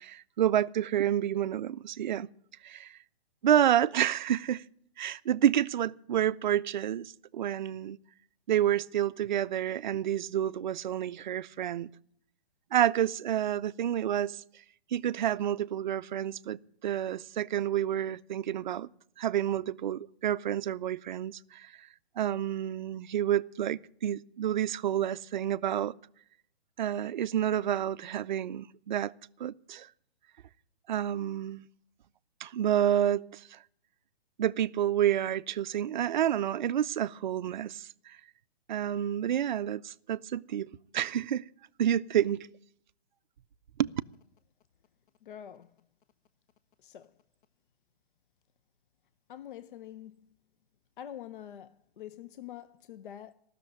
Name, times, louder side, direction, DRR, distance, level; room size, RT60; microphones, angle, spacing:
voice 1, 0.0-2.3 2.6-3.0 3.4-4.6 5.0-8.0 8.5-11.9 12.7-14.4 14.9-18.9 19.2-21.7 22.2-25.9 26.8-29.1 29.4-29.9 30.9-31.7 32.4-33.6 34.4-38.2 38.7-41.4 41.8-42.5 43.8-43.9, right 10 dB, 50° right, 0.4 m, -29 dB
voice 2, 45.2-45.7 46.8-47.1 49.3-50.3 51.0-53.3, left 10 dB, 55° left, 0.7 m, -45 dB
14.5 x 6.6 x 9.9 m
hypercardioid pair, 155°, 31 cm